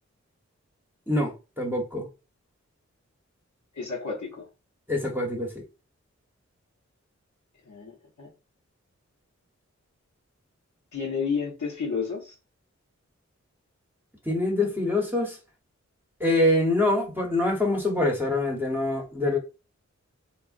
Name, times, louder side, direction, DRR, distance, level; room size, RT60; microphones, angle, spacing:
voice 1, 1.1-2.1 4.9-5.6 14.2-15.4 16.2-19.4, left 2 dB, 5° right, 0.8 m, -25 dB
voice 2, 3.7-4.5 7.7-8.3 10.9-12.3, left 5 dB, 80° left, 0.7 m, -31 dB
3.5 x 2.0 x 2.4 m
wide cardioid pair, 60°, 29 cm